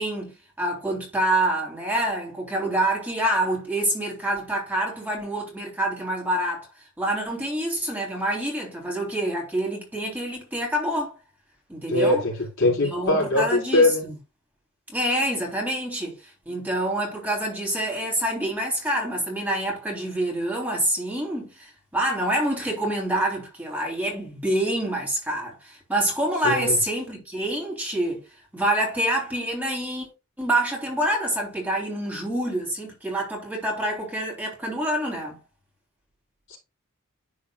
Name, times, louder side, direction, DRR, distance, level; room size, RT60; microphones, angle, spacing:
voice 1, 0.0-6.7 7.0-11.1 11.7-12.2 12.6-14.1 14.9-28.2 28.5-30.1 30.4-35.4, right 1 dB, 10° right, 3.2 m, -27 dB
voice 2, 11.9-13.4 13.7-14.1 26.4-26.8 36.5-36.6, left 2 dB, 60° left, 4.0 m, -21 dB
11.0 x 4.7 x 2.4 m
head